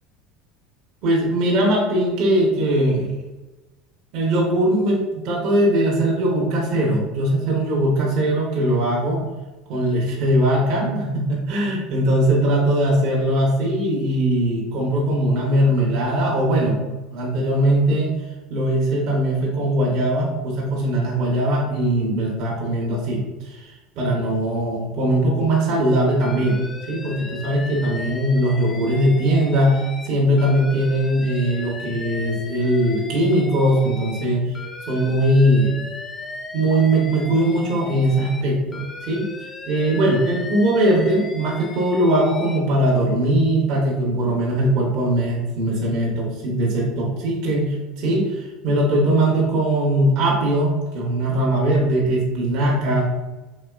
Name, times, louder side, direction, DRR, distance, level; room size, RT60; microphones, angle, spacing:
voice 1, 1.0-3.1 4.1-9.2 9.7-16.8 17.1-18.1 18.5-26.6 26.9-34.6 34.9-35.7 36.5-39.3 39.7-53.0, right 1 dB, 60° right, -3 dB, 0.9 m, -20 dB
Alarm, 26.2-30.1 30.4-34.3 34.5-38.4 38.7-42.6, left 3 dB, 20° left, 0.4 m, -37 dB
4.1 x 3.0 x 2.3 m, 1.1 s
supercardioid pair, 100°, 0 cm